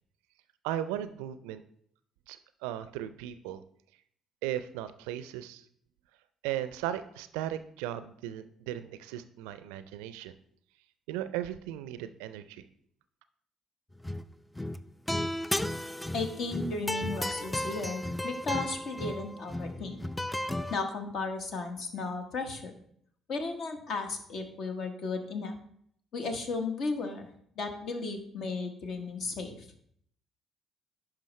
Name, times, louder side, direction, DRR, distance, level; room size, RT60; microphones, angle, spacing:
voice 1, 0.6-1.6 2.3-3.6 4.4-5.6 6.4-10.3 11.1-12.7, right 12 dB, 75° right, 12 dB, 0.4 m, -36 dB
sound 1, 14.0-14.3 14.6-20.8, left 1 dB, 10° left, 0.4 m, -34 dB
voice 2, 16.1-20.0 20.7-22.8 23.3-25.5 26.1-27.3 27.6-29.7, left 3 dB, 60° left, 6 dB, 1.2 m, -35 dB
10.5 x 5.0 x 3.2 m, 0.66 s
hypercardioid pair, 50°, 0 cm